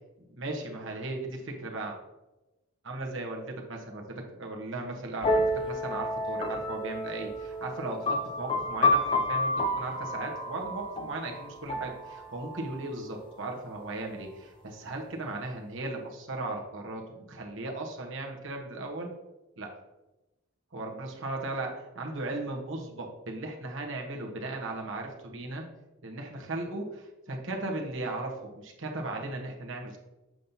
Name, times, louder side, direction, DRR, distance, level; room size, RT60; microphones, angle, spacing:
voice 1, 0.3-2.0 2.8-9.5 9.8-19.1 19.6-19.7 20.7-25.6 26.0-30.0, right 2 dB, 60° right, 1 dB, 1.1 m, -37 dB
sound 1, 5.2-12.8, left 1 dB, 25° left, 0.5 m, -30 dB
7.5 x 5.3 x 2.8 m, 1.0 s
head